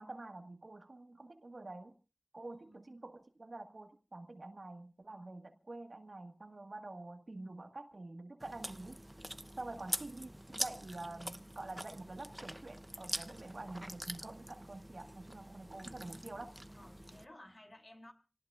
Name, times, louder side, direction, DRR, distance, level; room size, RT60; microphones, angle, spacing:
voice 1, 0.0-2.0 2.3-9.0 9.6-16.6, right 2 dB, 70° right, 1.7 m, -47 dB
voice 2, 2.5-2.9 15.0-15.2 16.8-18.1, left 1 dB, 45° left, 3.1 m, -56 dB
Chewing mastication, 8.4-17.2, right 1 dB, 15° right, 0.7 m, -44 dB
27.0 x 18.5 x 2.5 m
wide cardioid pair, 45°, 0 cm